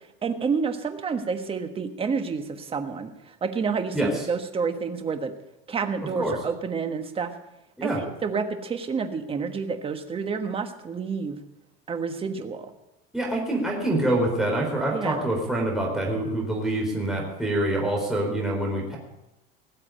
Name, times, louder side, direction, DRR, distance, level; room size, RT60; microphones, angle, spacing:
voice 1, 0.2-5.3 5.7-7.3 7.8-11.4 11.9-12.7 14.9-15.3, right 5 dB, 20° right, 7 dB, 1.4 m, -29 dB
voice 2, 3.9-4.2 6.2-6.3 7.8-8.0 13.1-19.0, right 1 dB, ahead, -2 dB, 4.2 m, -26 dB
18.5 x 7.6 x 8.8 m, 0.93 s
supercardioid pair, 150°, 29 cm